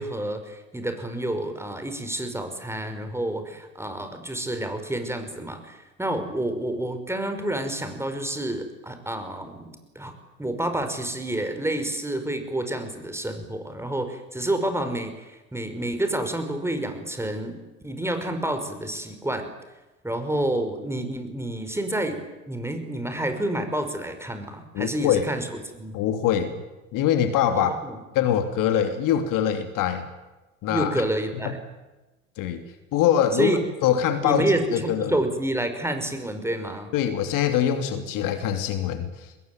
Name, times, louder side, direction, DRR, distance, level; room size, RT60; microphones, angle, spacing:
voice 1, 0.0-10.1 10.4-17.6 17.8-19.5 20.0-26.0 27.5-28.0 30.7-31.6 33.4-33.6 34.2-36.9, right 1 dB, 5° right, 7 dB, 5.4 m, -29 dB
voice 2, 24.7-25.3 25.9-26.6 26.9-27.7 28.1-30.1 30.6-31.0 31.4-31.5 32.4-32.6 32.9-34.5 34.7-35.2 36.9-39.3, left 10 dB, 50° left, 8 dB, 2.9 m, -23 dB
24.5 x 21.0 x 9.4 m, 1.1 s
hypercardioid pair, 80°, 40 cm